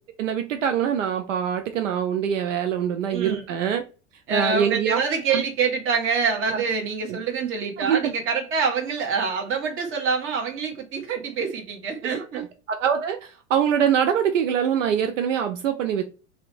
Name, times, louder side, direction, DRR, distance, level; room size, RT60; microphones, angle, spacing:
voice 1, 0.2-3.8 4.3-5.0 5.3-5.4 7.1-7.2 7.8-8.0 12.7-16.0, right 8 dB, 75° right, 7 dB, 0.5 m, -24 dB
voice 2, 3.1-3.4 4.3-12.5, right 5 dB, 35° right, 2 dB, 0.9 m, -26 dB
2.7 x 2.1 x 2.6 m, 0.33 s
figure-of-eight pair, 90°, 38 cm